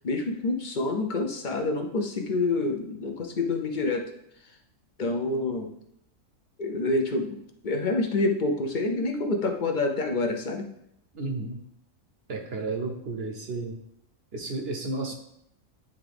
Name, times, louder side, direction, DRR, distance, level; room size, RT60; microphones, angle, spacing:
voice 1, 0.0-4.1 4.4-4.6 5.0-5.7 6.6-10.7, left 2 dB, 45° left, 4 dB, 0.6 m, -27 dB
voice 2, 11.1-11.6 12.3-13.8 14.3-15.1, right 3 dB, 55° right, 3 dB, 0.8 m, -32 dB
9.6 x 3.5 x 3.4 m, 0.75 s
omnidirectional pair, 1.4 m